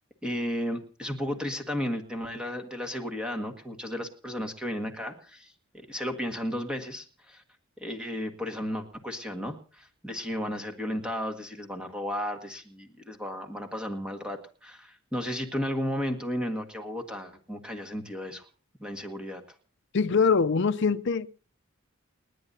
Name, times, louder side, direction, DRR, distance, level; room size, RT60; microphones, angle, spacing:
voice 1, 0.2-7.4 7.8-18.5 18.8-19.4, equal, 5° right, 1.7 m, -34 dB
voice 2, 19.9-21.3, left 5 dB, 55° left, 0.5 m, -23 dB
29.5 x 9.9 x 2.7 m
head